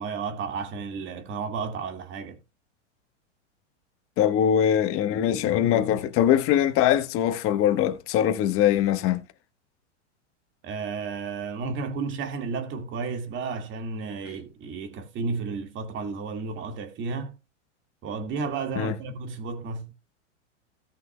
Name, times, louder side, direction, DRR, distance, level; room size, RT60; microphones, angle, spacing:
voice 1, 0.0-2.4 10.6-17.4 18.0-19.9, right 4 dB, 35° right, 2.1 m, -32 dB
voice 2, 4.2-9.2 18.8-18.9, left 10 dB, 40° left, 1.3 m, -22 dB
17.5 x 6.2 x 2.3 m
hypercardioid pair, 125°, 36 cm